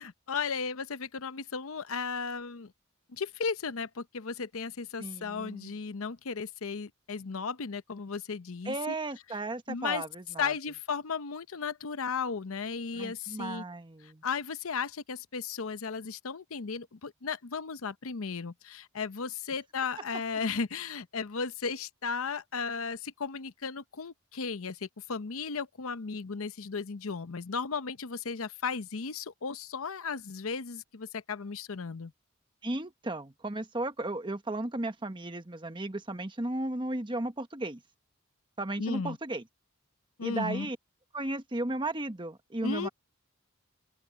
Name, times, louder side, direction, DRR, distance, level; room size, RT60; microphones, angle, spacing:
voice 1, 0.0-2.7 3.1-8.9 9.7-10.0 10.4-13.6 14.0-32.1 38.8-39.2 40.2-40.7 42.6-42.9, left 5 dB, 75° left, 0.8 m, -35 dB
voice 2, 5.0-5.7 8.6-10.5 12.9-14.2 32.6-37.8 38.6-39.4 40.2-40.8 41.1-42.9, right 2 dB, 20° right, 1.2 m, -35 dB
open air
head